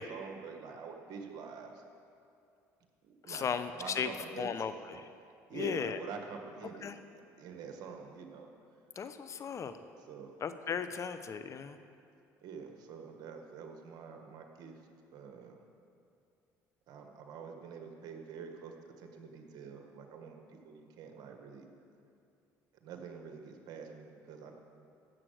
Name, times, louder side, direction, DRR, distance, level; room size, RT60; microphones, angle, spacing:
voice 1, 0.0-1.8 3.0-3.5 3.8-4.5 5.5-6.9 7.4-8.5 10.0-10.4 10.6-10.8 12.4-14.8 15.1-15.6 16.9-21.7 22.8-24.5, right 6 dB, 65° right, 4 dB, 1.6 m, -46 dB
voice 2, 3.3-4.1 4.4-5.1 5.5-6.0 6.8-7.0 9.0-9.7 10.4-11.8, left 7 dB, 45° left, 11 dB, 0.8 m, -36 dB
15.5 x 7.6 x 6.5 m, 2.5 s
supercardioid pair, 85°, 7 cm